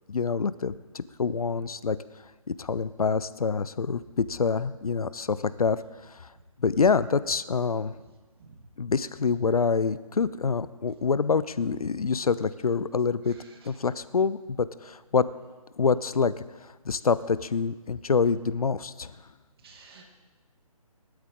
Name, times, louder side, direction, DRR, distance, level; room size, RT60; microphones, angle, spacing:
voice 1, 0.1-2.0 2.5-6.3 6.6-7.9 8.8-13.3 13.6-15.3 15.8-16.4 16.6-19.1, left 5 dB, 75° left, 16 dB, 0.7 m, -26 dB
voice 2, 13.3-13.7 19.6-20.0, right 4 dB, 40° right, 1 dB, 2.5 m, -52 dB
20.0 x 12.5 x 3.8 m, 1.3 s
figure-of-eight pair, 150°, 19 cm